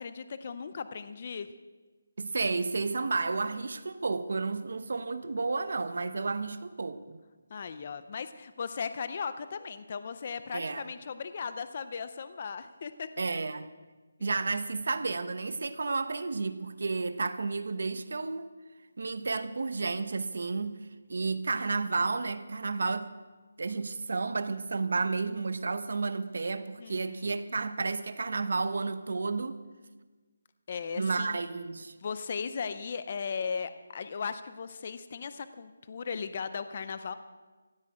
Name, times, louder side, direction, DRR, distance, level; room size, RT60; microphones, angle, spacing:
voice 1, 0.0-1.5 7.5-13.1 26.8-27.4 30.7-31.4 32.0-37.1, left 6 dB, 25° left, 12 dB, 0.5 m, -37 dB
voice 2, 2.2-7.2 10.5-10.9 13.2-13.7 14.2-18.5 19.0-23.1 23.6-29.6 31.0-31.9, right 3 dB, 50° right, 12 dB, 0.9 m, -32 dB
16.0 x 8.1 x 8.7 m, 1.3 s
hypercardioid pair, 180°, 0 cm